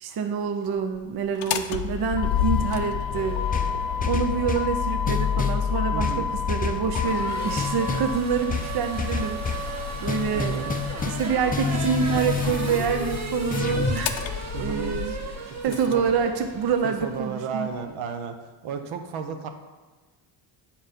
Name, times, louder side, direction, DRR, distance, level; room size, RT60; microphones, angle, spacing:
voice 1, 0.0-3.7 4.1-9.7 10.0-10.7 11.0-14.2 14.6-15.1 15.6-17.7, right 6 dB, 50° right, 6 dB, 0.7 m, -27 dB
Motor vehicle (road), 1.2-15.9, left 8 dB, 65° left, 0.7 m, -30 dB
Race car auto racing / Accelerating revving vroom, 3.1-17.9, right 3 dB, 35° right, 1.4 m, -37 dB
sound 1, 3.5-4.7 5.1-5.6 6.0-7.2 7.6-8.1 8.5-9.7 10.1-11.3 11.5-14.0, left 5 dB, 20° left, 0.5 m, -29 dB
voice 2, 5.9-6.3 10.3-10.7 14.5-15.3 15.7-16.0 16.8-18.3 18.6-19.5, right 6 dB, 75° right, 6 dB, 0.9 m, -33 dB
7.8 x 4.4 x 5.2 m, 1.3 s
cardioid pair, 95°, 49 cm